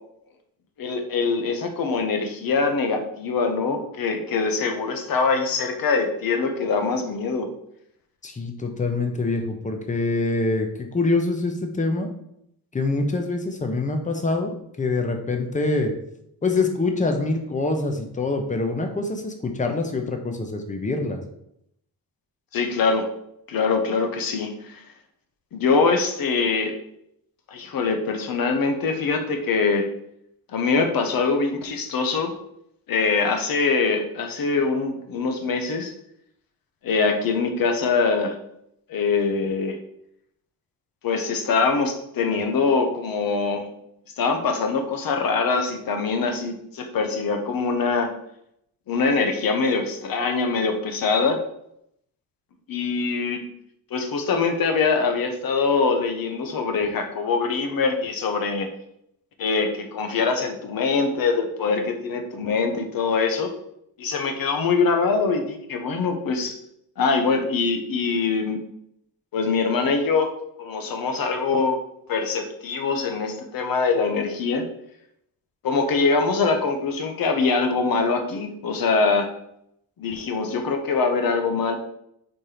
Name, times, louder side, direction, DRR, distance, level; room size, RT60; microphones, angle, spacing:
voice 1, 0.8-7.5 22.5-23.1 23.5-24.8 25.5-26.7 27.5-29.9 30.5-32.3 32.9-35.9 36.8-38.4 38.9-39.8 41.0-43.7 44.2-48.1 48.9-51.4 52.7-53.4 53.9-58.7 59.4-63.5 64.0-66.6 67.0-68.6 69.3-71.8 72.1-74.6 75.6-79.3 80.0-81.7, left 4 dB, 65° left, 5 dB, 1.0 m, -23 dB
voice 2, 8.2-12.1 12.7-14.5 14.8-15.9 16.4-21.2, left 3 dB, 20° left, 4 dB, 0.8 m, -25 dB
4.4 x 4.4 x 5.0 m, 0.75 s
wide cardioid pair, 155°, 38 cm